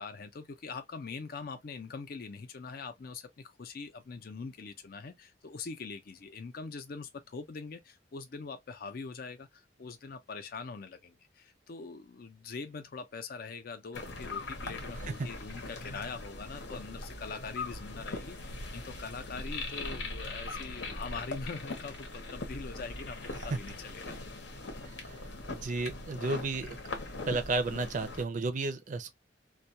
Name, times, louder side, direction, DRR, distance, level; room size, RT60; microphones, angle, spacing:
voice 1, 0.0-23.2 23.4-24.1, left 4 dB, 55° left, 0.5 m, -43 dB
sound 1, 13.9-28.2, left 2 dB, 85° left, 0.9 m, -41 dB
voice 2, 24.8-25.2 25.5-26.8 27.3-29.1, right 3 dB, 45° right, 0.5 m, -33 dB
2.3 x 2.2 x 2.7 m
head